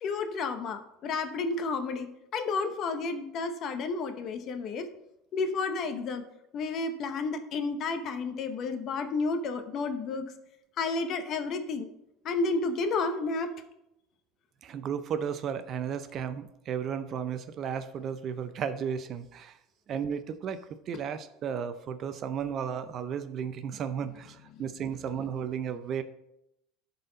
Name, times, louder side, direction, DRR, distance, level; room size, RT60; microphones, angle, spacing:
voice 1, 0.0-4.9 5.3-6.2 6.5-10.3 10.8-11.9 12.2-13.5 24.5-24.6, left 4 dB, 45° left, 8 dB, 0.9 m, -31 dB
voice 2, 14.6-19.6 19.9-26.0, right 7 dB, 40° right, 11 dB, 0.5 m, -34 dB
11.5 x 4.2 x 3.9 m, 0.83 s
supercardioid pair, 135°, 0 cm